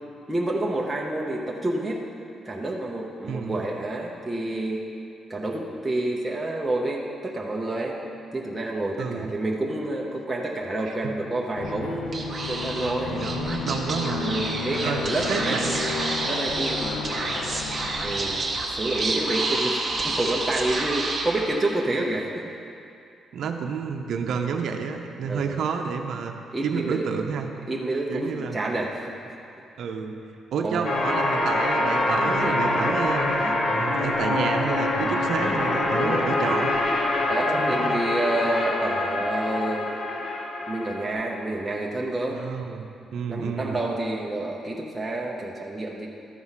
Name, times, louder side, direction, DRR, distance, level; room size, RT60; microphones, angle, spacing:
voice 1, 0.3-2.0 2.4-4.8 5.3-8.0 8.3-13.2 14.1-15.6 16.3-17.6 18.0-22.4 25.3-25.6 26.5-27.1 27.7-29.1 30.6-30.9 37.3-39.9 40.7-42.4 43.3-46.1, right 2 dB, 10° right, -3 dB, 0.6 m, -29 dB
voice 2, 3.2-3.6 9.0-9.3 10.9-11.1 13.1-14.4 14.8-15.0 15.3-15.7 23.3-26.3 26.6-27.5 28.1-28.6 29.8-30.2 30.5-36.7 37.5-38.1 42.3-43.8, right 6 dB, 60° right, 4 dB, 0.7 m, -30 dB
Aircraft, 11.6-18.9, left 3 dB, 85° left, 0.7 m, -32 dB
Speech / Whispering, 12.1-21.9, right 2 dB, 25° right, 1.0 m, -29 dB
sound 1, 30.8-41.1, left 2 dB, 40° left, 0.9 m, -25 dB
13.0 x 4.7 x 5.7 m, 2.6 s
cardioid pair, 170°, 0 cm